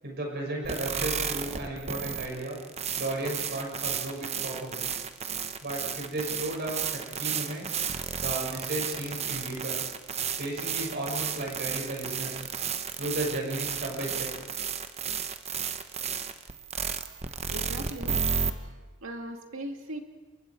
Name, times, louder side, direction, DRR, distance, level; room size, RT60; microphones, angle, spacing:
voice 1, 0.0-2.6 2.9-4.9 5.6-7.8 8.2-9.8 10.4-12.4 13.0-14.3, right 1 dB, 50° right, 0 dB, 6.3 m, -34 dB
sound 1, 0.6-18.5, right 7 dB, 30° right, 1.0 m, -33 dB
voice 2, 17.5-18.2 19.0-20.0, right 1 dB, 65° right, 3 dB, 2.4 m, -38 dB
29.0 x 22.5 x 4.8 m, 1.3 s
head